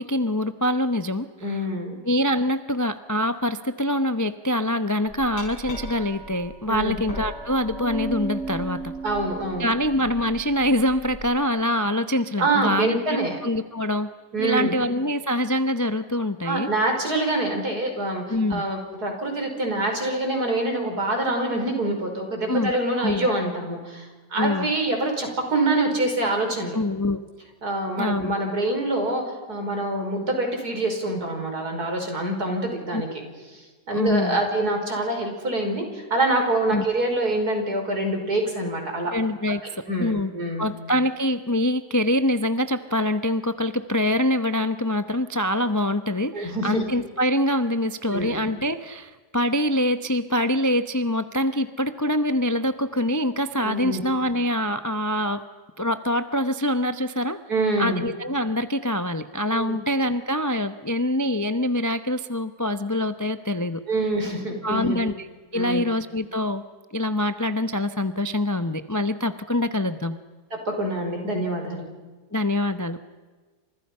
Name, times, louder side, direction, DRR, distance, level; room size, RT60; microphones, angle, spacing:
voice 1, 0.0-1.6 2.0-8.9 9.6-14.1 14.4-16.7 18.3-18.6 22.5-22.7 23.0-23.3 24.3-24.7 26.7-27.2 28.0-28.3 32.9-33.2 33.9-34.4 36.7-36.8 39.1-40.3 40.6-55.4 55.8-57.4 57.8-63.8 64.6-65.3 65.5-66.6 66.9-70.2 72.3-73.0, left 1 dB, 15° left, 9 dB, 0.6 m, -25 dB
voice 2, 1.4-2.0 6.7-7.0 9.0-9.7 12.4-13.4 14.3-14.8 16.5-18.2 18.5-26.8 27.6-29.2 29.5-33.2 33.5-33.6 33.9-39.1 39.9-40.7 46.3-46.8 48.1-48.3 53.6-54.0 57.5-58.0 59.5-59.8 63.9-65.0 65.5-65.8 70.7-71.9, right 2 dB, 65° right, 3 dB, 5.9 m, -25 dB
Glass, 5.1-11.2, right 2 dB, 90° left, 7.3 m, -36 dB
30.0 x 27.5 x 5.6 m, 1.4 s
omnidirectional pair, 1.8 m